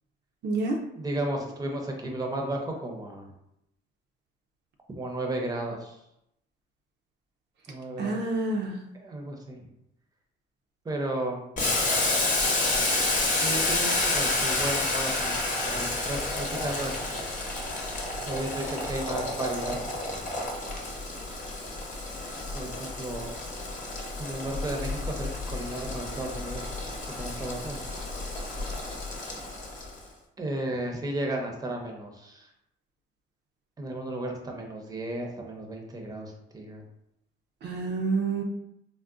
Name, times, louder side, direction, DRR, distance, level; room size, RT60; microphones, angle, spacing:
voice 1, 0.4-0.8 8.0-8.7 37.6-38.4, right 3 dB, 60° right, 1 dB, 0.5 m, -28 dB
voice 2, 0.9-3.3 4.9-6.0 7.7-8.2 8.9-9.7 10.8-11.4 13.4-17.2 18.3-19.8 20.1-20.3 22.5-23.3 24.2-26.9 27.2-27.9 30.4-32.5 33.8-36.8, right 1 dB, 20° right, 2 dB, 0.6 m, -34 dB
Boiling, 11.6-30.0, left 2 dB, 40° left, 0.8 m, -30 dB
3.7 x 2.1 x 2.4 m, 0.81 s
cardioid pair, 90°, 20 cm